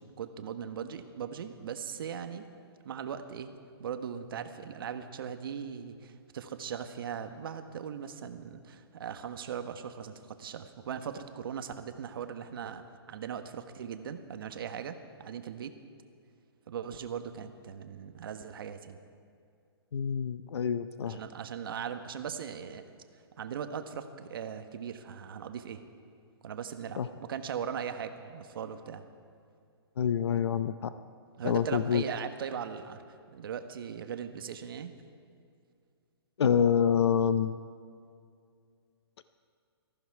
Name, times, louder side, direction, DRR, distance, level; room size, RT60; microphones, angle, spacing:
voice 1, 0.0-2.5 2.8-3.5 3.8-15.7 16.7-19.0 21.0-22.8 23.4-25.8 26.4-29.0 31.4-33.0 33.3-34.9, right 7 dB, 55° right, 8 dB, 1.2 m, -39 dB
voice 2, 19.9-21.2 27.0-27.1 30.0-30.9 31.4-32.0 36.4-37.6, left 8 dB, 75° left, 12 dB, 0.6 m, -27 dB
19.0 x 14.5 x 4.7 m, 2.3 s
hypercardioid pair, 155°, 14 cm